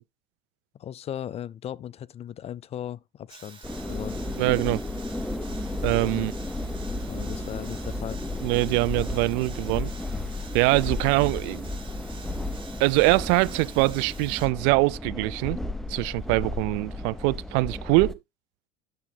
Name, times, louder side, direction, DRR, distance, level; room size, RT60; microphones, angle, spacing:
voice 1, 0.7-4.2 6.1-6.3 7.1-8.2, left 10 dB, 35° left, 0.4 m, -37 dB
sound 1, 3.3-14.5, right 5 dB, 25° right, 2.8 m, -48 dB
sound 2, 3.6-18.1, left 2 dB, ahead, 0.8 m, -33 dB
voice 2, 4.4-4.8 5.8-6.3 8.4-9.9 10.5-11.7 12.8-15.6 15.9-18.2, right 24 dB, 70° right, 0.4 m, -23 dB
9.9 x 7.1 x 2.2 m
supercardioid pair, 105°, 19 cm